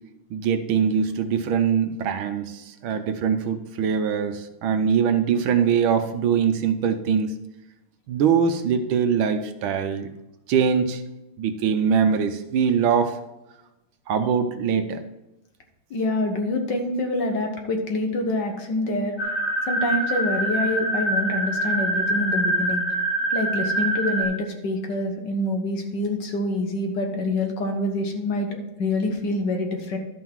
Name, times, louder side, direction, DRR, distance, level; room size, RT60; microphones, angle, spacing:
voice 1, 0.3-7.3 8.1-10.1 10.5-11.0 11.4-13.2 14.1-15.0, right 7 dB, 70° right, 8 dB, 1.5 m, -22 dB
voice 2, 15.9-19.3 19.7-22.8 23.3-30.0, left 1 dB, 60° left, 4 dB, 1.8 m, -26 dB
sound 1, 19.2-24.2, right 1 dB, 15° left, 1.0 m, -25 dB
12.0 x 5.6 x 4.6 m, 0.96 s
omnidirectional pair, 2.4 m